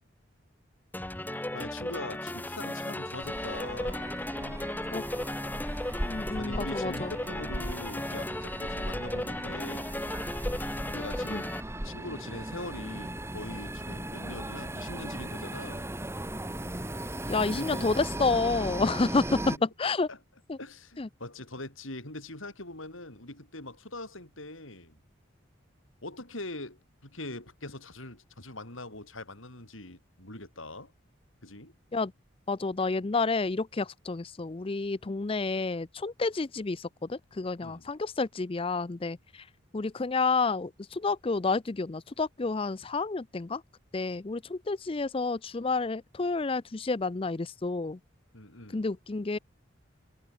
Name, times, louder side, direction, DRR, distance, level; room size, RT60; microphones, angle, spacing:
sound 1, 0.9-11.6, left 1 dB, 10° left, 1.0 m, -36 dB
voice 1, 1.5-4.7 6.4-10.0 10.9-11.6 11.8-15.9 17.5-17.9 19.5-19.6 20.1-20.2 20.6-25.0 26.0-30.9 31.4-31.7 37.6-37.9 48.3-48.9, left 2 dB, 75° left, 7.8 m, -42 dB
sound 2, 3.2-19.6, right 1 dB, 15° right, 2.3 m, -37 dB
voice 2, 6.0-7.1 11.3-11.4 17.3-19.5 19.8-20.1 20.5-20.6 21.0-21.1 31.9-32.1 32.5-39.4 39.7-43.6 43.9-48.0 48.7-49.4, left 3 dB, 25° left, 0.5 m, -30 dB
head